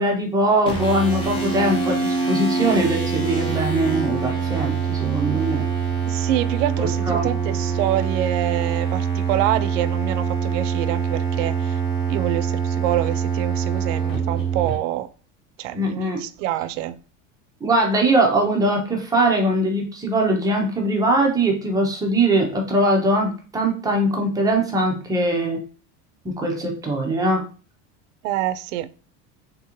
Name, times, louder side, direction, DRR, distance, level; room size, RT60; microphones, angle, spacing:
voice 1, 0.0-5.6 6.8-7.3 15.7-16.2 17.6-25.6 26.2-27.4, right 1 dB, 10° right, 0.4 m, -21 dB
sound 1, 0.7-14.8, right 6 dB, 15° left, 0.7 m, -24 dB
voice 2, 6.0-11.8 12.1-15.1 15.6-17.0 28.2-28.9, right 13 dB, 80° right, 0.5 m, -26 dB
3.6 x 3.4 x 2.9 m
cardioid pair, 170°, 37 cm